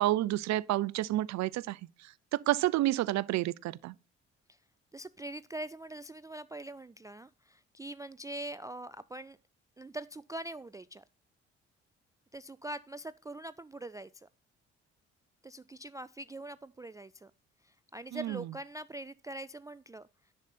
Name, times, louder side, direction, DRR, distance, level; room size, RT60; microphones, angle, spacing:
voice 1, 0.0-1.8 2.3-3.9 18.1-18.4, right 15 dB, 55° right, 0.6 m, -29 dB
voice 2, 4.9-9.4 9.8-11.0 12.3-14.3 15.4-17.3 17.6-20.1, right 1 dB, 10° right, 0.4 m, -43 dB
10.5 x 6.5 x 4.3 m
hypercardioid pair, 45°, 34 cm